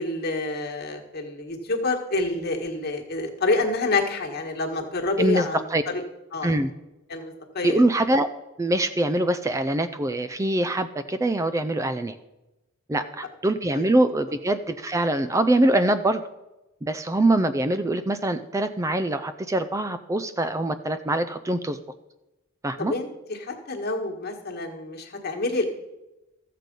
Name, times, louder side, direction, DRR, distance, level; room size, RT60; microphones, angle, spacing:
voice 1, 0.0-6.0 6.3-6.6 7.1-7.8 13.0-13.1 13.7-13.8 22.8-25.7, left 2 dB, 50° left, 2 dB, 1.5 m, -28 dB
voice 2, 5.2-5.8 6.4-6.7 7.6-8.3 8.6-12.2 12.9-16.2 16.8-21.8 22.6-22.9, right 1 dB, 15° right, 10 dB, 0.3 m, -23 dB
14.0 x 7.5 x 5.3 m, 1.0 s
head